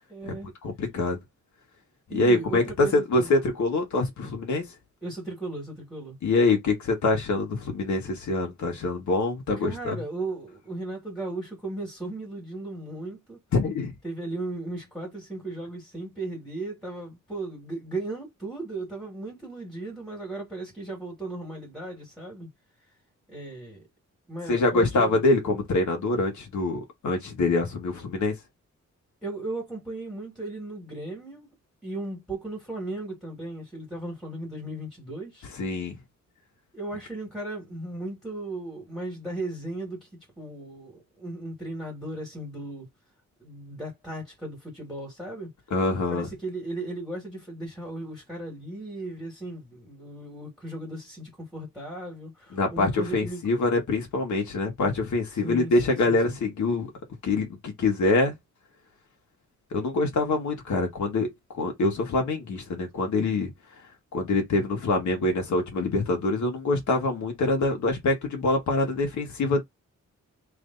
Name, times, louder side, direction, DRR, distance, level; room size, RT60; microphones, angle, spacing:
voice 1, 0.1-0.5 2.1-3.3 5.0-6.2 9.6-13.4 14.0-22.5 23.3-23.8 24.3-25.3 29.2-31.5 31.8-35.5 36.7-42.9 43.4-45.5 46.1-53.4 55.4-56.4, right 2 dB, ahead, 2.1 m, -36 dB
voice 2, 0.6-1.2 2.1-4.6 6.2-10.0 13.5-13.9 24.5-28.3 35.5-35.9 45.7-46.3 52.5-56.9 57.2-58.3 59.7-61.3 61.5-63.5 64.1-69.6, left 2 dB, 75° left, 1.7 m, -25 dB
3.5 x 3.2 x 4.0 m
wide cardioid pair, 145°, 29 cm